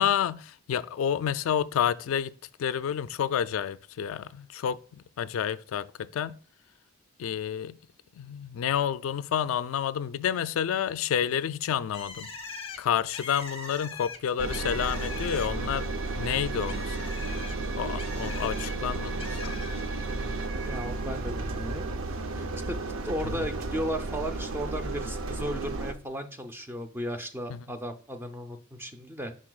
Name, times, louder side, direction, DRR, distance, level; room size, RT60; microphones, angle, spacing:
voice 1, 0.0-2.3 2.6-6.4 7.2-7.8 8.2-12.3 12.8-15.9 16.2-17.1 17.8-19.6 27.5-27.6, left 9 dB, 80° left, 0.3 m, -29 dB
Bird, 11.9-15.8 16.1-18.7 19.2-19.8, left 4 dB, 25° left, 0.8 m, -42 dB
Engine, 14.4-25.9, right 3 dB, 75° right, 0.6 m, -33 dB
voice 2, 20.1-21.9 22.7-22.8 23.0-29.3, equal, 10° right, 0.5 m, -35 dB
11.0 x 3.8 x 2.3 m
head